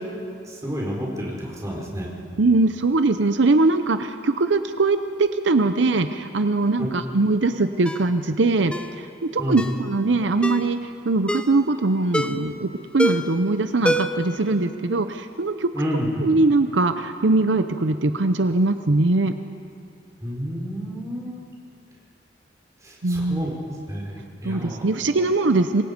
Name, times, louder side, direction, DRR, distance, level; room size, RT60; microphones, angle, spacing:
voice 1, 0.6-2.1 6.8-6.9 9.4-9.6 15.7-16.4 20.2-21.4 23.1-23.5 23.9-24.1 24.4-24.8, equal, 15° right, -3 dB, 4.6 m, -29 dB
voice 2, 2.4-9.1 9.3-15.7 16.2-19.3 23.0-23.4 24.4-25.8, right 3 dB, 80° right, 9 dB, 0.7 m, -21 dB
Ringtone, 7.8-8.1 8.7-8.9 9.6-9.8 10.4-10.7 11.3-11.6 12.1-12.5 13.0-13.4 13.8-14.3 14.6-14.7, equal, 5° left, 0.7 m, -25 dB
26.5 x 22.5 x 5.3 m, 2.5 s
head